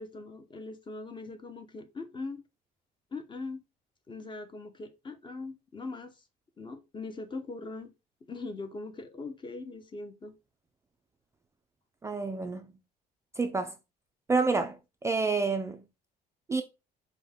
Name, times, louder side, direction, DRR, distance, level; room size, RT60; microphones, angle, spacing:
voice 1, 0.0-2.4 3.1-3.6 4.1-6.2 6.6-7.9 8.3-10.3, left 3 dB, 30° left, 0.7 m, -41 dB
voice 2, 12.0-12.7 13.4-13.7 14.3-15.8 16.5-16.6, right 4 dB, 15° right, 0.4 m, -28 dB
5.2 x 2.2 x 3.5 m
cardioid pair, 110°, 17 cm